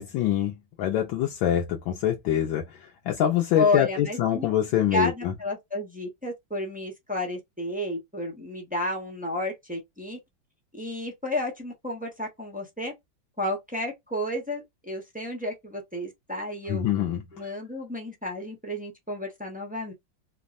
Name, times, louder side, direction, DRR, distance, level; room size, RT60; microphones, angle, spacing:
voice 1, 0.0-5.3 16.7-17.2, left 11 dB, 85° left, 1.4 m, -25 dB
voice 2, 3.6-4.5 4.9-10.2 10.7-12.9 13.4-16.8 17.3-19.9, left 2 dB, 10° right, 0.4 m, -31 dB
3.4 x 2.0 x 2.4 m
omnidirectional pair, 2.1 m